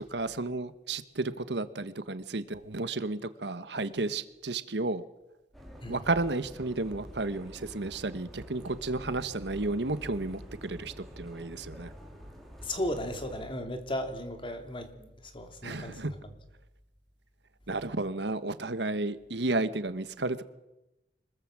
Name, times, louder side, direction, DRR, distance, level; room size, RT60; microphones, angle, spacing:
voice 1, 0.0-5.0 5.9-11.9 15.6-16.1 17.7-20.4, right 2 dB, 75° right, 1.3 m, -32 dB
sound 1, 5.5-13.5, equal, ahead, 4.8 m, -47 dB
voice 2, 12.6-16.3, left 1 dB, 30° left, 2.8 m, -36 dB
25.5 x 21.0 x 7.5 m
head